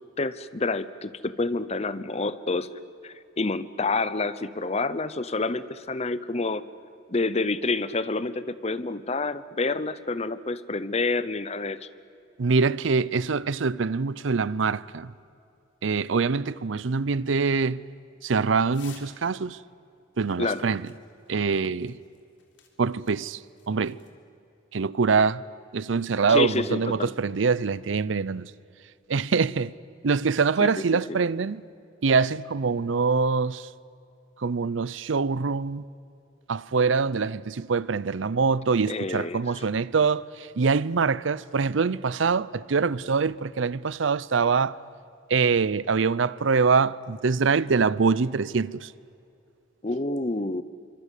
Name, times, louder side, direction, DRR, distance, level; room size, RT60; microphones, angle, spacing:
voice 1, 0.2-2.7 3.0-6.6 7.1-11.9 20.4-20.7 26.3-27.1 30.6-30.8 38.9-39.4 49.8-50.6, left 3 dB, 35° left, 0.8 m, -28 dB
voice 2, 12.4-15.1 15.8-17.8 18.2-19.6 20.2-20.8 21.3-22.0 22.8-23.4 23.7-24.0 24.7-25.4 25.7-28.5 29.1-29.7 30.0-31.6 32.0-33.7 34.4-35.9 36.5-44.8 45.3-48.9, right 5 dB, 75° right, 0.6 m, -24 dB
sound 1, 18.7-19.2 20.3-24.1, left 7 dB, 65° left, 3.7 m, -54 dB
27.0 x 25.0 x 8.3 m
head